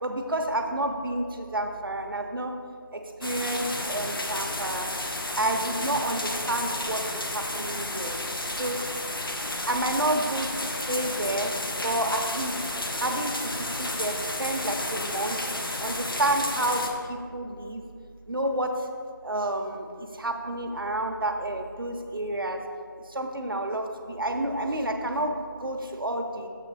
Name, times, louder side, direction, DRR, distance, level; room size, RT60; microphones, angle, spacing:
voice 1, 0.0-2.5 2.9-4.9 5.3-8.2 8.5-8.8 9.7-11.5 11.8-12.6 13.0-15.4 15.8-17.8 18.3-18.9 19.2-22.6 23.1-26.5, right 1 dB, 75° right, 4 dB, 0.9 m, -30 dB
sound 1, 3.2-16.9, left 1 dB, 75° left, 1.0 m, -32 dB
7.4 x 5.7 x 4.1 m, 2.3 s
figure-of-eight pair, 180°, 12 cm